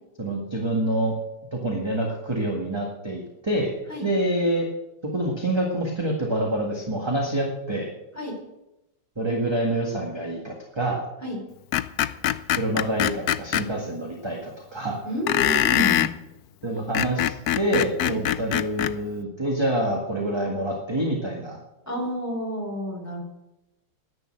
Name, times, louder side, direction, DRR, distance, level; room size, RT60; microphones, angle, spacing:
voice 1, 0.2-1.1 1.5-3.7 4.0-4.7 5.1-7.9 9.2-11.0 12.5-15.0 16.6-21.6, right 1 dB, 15° right, 0 dB, 1.6 m, -26 dB
Screech, 11.7-13.7 15.3-16.1 16.8-19.0, left 12 dB, 75° left, 0.8 m, -23 dB
voice 2, 15.0-16.1 18.0-18.2 21.9-23.2, equal, 5° left, 0 dB, 3.8 m, -30 dB
11.0 x 10.0 x 7.6 m, 0.91 s
omnidirectional pair, 2.2 m